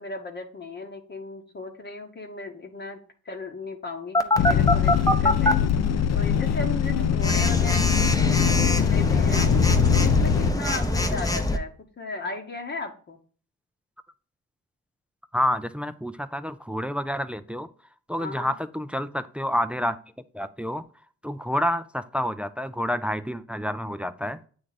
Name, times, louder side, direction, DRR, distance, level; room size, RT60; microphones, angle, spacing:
voice 1, 0.0-3.0 3.2-5.6 6.1-9.6 10.0-11.7 12.0-13.2 18.2-18.5, left 3 dB, 35° left, 3 dB, 1.0 m, -36 dB
Telephone, 4.1-5.5 7.2-11.6, left 1 dB, 10° left, 0.7 m, -24 dB
sound 1, 4.4-10.5, left 8 dB, 60° left, 0.6 m, -22 dB
voice 2, 15.3-17.7 18.1-20.0 20.3-20.9 21.2-24.4, equal, 5° right, 12 dB, 0.3 m, -28 dB
8.6 x 3.2 x 4.0 m, 0.44 s
cardioid pair, 90°, 30 cm